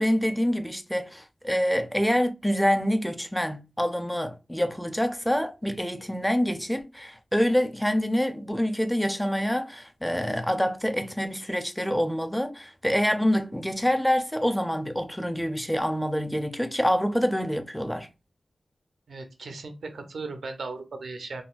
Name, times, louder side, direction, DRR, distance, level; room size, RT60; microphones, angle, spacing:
voice 1, 0.0-18.1, equal, 5° left, 0.5 m, -26 dB
voice 2, 19.1-21.4, right 3 dB, 90° right, 0.6 m, -37 dB
3.8 x 2.2 x 2.4 m
wide cardioid pair, 60°, 0 cm